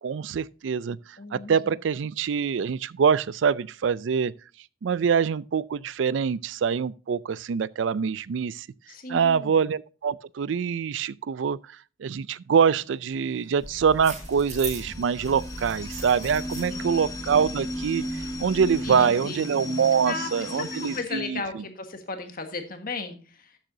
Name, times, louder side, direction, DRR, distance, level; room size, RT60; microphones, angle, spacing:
voice 1, 0.0-4.3 4.8-8.7 9.1-21.4, right 6 dB, 70° right, 0.4 m, -25 dB
voice 2, 1.2-1.8 8.9-9.6 16.7-17.0 18.8-19.4 20.0-23.6, left 4 dB, 50° left, 1.5 m, -36 dB
sound 1, 12.6-21.0, left 1 dB, 20° left, 1.1 m, -36 dB
sound 2, 13.6-19.0, right 2 dB, 40° right, 5.8 m, -40 dB
13.0 x 7.9 x 2.7 m
head